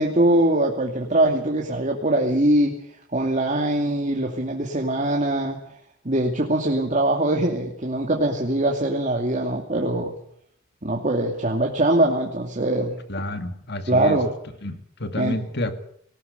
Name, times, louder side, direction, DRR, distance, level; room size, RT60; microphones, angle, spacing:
voice 1, 0.0-2.8 3.1-5.6 6.0-10.1 10.8-13.0 13.9-14.3 15.2-15.4, right 1 dB, 40° right, 1 dB, 2.5 m, -22 dB
voice 2, 13.1-14.2 14.6-15.7, left 1 dB, 55° left, 8 dB, 2.3 m, -29 dB
19.5 x 19.5 x 8.1 m, 0.66 s
head